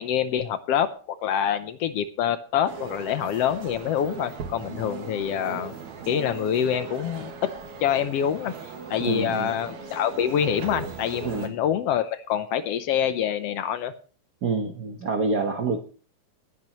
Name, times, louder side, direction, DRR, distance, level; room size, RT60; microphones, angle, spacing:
voice 1, 0.0-5.7 6.1-7.3 7.8-8.5 8.9-13.9, left 9 dB, 70° left, 11 dB, 1.6 m, -26 dB
sound 1, 2.7-11.5, right 5 dB, 75° right, 3.0 m, -39 dB
voice 2, 9.0-9.5 11.2-11.5 14.4-15.8, right 4 dB, 55° right, 5 dB, 1.2 m, -27 dB
19.5 x 9.5 x 3.0 m, 0.39 s
omnidirectional pair, 3.3 m